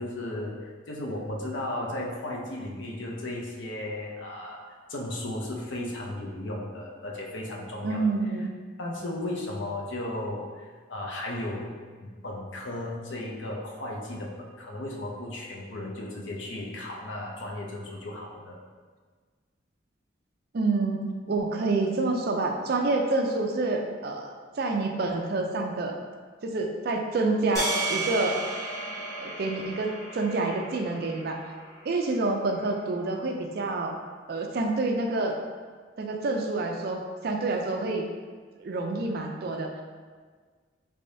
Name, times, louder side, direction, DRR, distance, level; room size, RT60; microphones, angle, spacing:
voice 1, 0.0-4.6 4.9-8.1 8.8-10.6 10.9-18.6, left 1 dB, 75° left, -1 dB, 0.6 m, -35 dB
voice 2, 7.8-8.5 20.5-21.0 21.3-26.0 26.4-28.4 28.8-28.9 29.2-31.4 31.8-33.9 34.3-35.4 36.0-38.0 38.6-39.8, right 3 dB, 50° right, 3 dB, 0.4 m, -28 dB
sound 1, 27.5-31.9, right 2 dB, 15° left, 1.0 m, -33 dB
3.4 x 3.4 x 2.6 m, 1.6 s
head